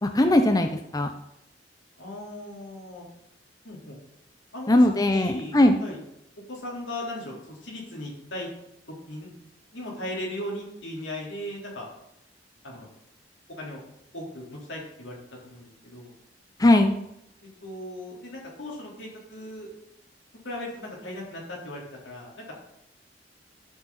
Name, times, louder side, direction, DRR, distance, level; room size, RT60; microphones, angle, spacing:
voice 1, 0.0-1.1 4.7-5.8 16.6-16.9, left 1 dB, 20° left, 6 dB, 0.6 m, -19 dB
voice 2, 2.0-3.0 3.6-4.0 4.5-4.7 5.1-6.0 6.5-8.5 9.1-9.3 9.7-11.9 12.6-12.9 13.6-13.8 14.1-15.2 15.4-16.1 17.4-19.7 20.4-22.5, left 1 dB, 80° left, -3 dB, 3.9 m, -37 dB
11.5 x 7.6 x 4.2 m, 0.79 s
head